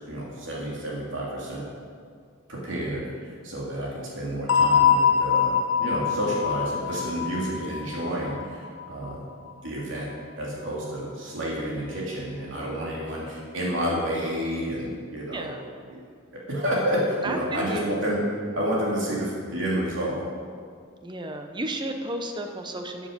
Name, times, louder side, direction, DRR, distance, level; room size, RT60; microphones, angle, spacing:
voice 1, 0.1-1.6 2.5-9.2 9.6-10.1 10.4-15.5 15.9-16.0 16.5-18.2 18.5-20.2, equal, 70° right, -5 dB, 2.9 m, -29 dB
sound 1, 4.5-9.1, left 7 dB, 75° left, 0.8 m, -23 dB
voice 2, 15.3-15.7 17.2-18.0 21.0-23.1, right 1 dB, 25° right, 5 dB, 0.9 m, -33 dB
14.0 x 7.5 x 5.3 m, 2.1 s
head